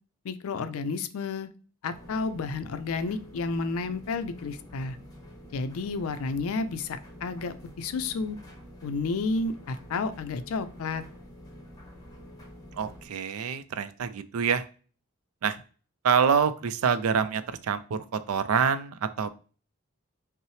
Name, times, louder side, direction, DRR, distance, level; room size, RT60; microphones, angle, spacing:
voice 1, 0.2-1.5 1.8-5.0 5.5-8.4 8.8-11.0, left 4 dB, 75° left, 11 dB, 0.4 m, -31 dB
sound 1, 1.9-13.1, equal, 15° left, 0.9 m, -48 dB
voice 2, 12.8-14.6 15.4-15.6 16.0-19.3, right 6 dB, 80° right, 12 dB, 0.4 m, -26 dB
5.4 x 2.0 x 3.1 m, 0.38 s
head